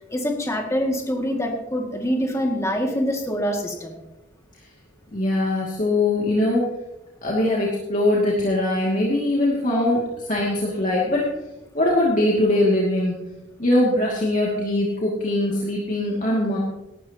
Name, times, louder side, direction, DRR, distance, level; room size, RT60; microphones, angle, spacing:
voice 1, 0.0-3.9, equal, 15° left, 1 dB, 2.1 m, -25 dB
voice 2, 5.1-6.7 7.2-11.3 11.7-13.2 13.6-16.6, left 1 dB, 40° left, -5 dB, 2.4 m, -21 dB
18.0 x 12.5 x 2.9 m, 0.97 s
head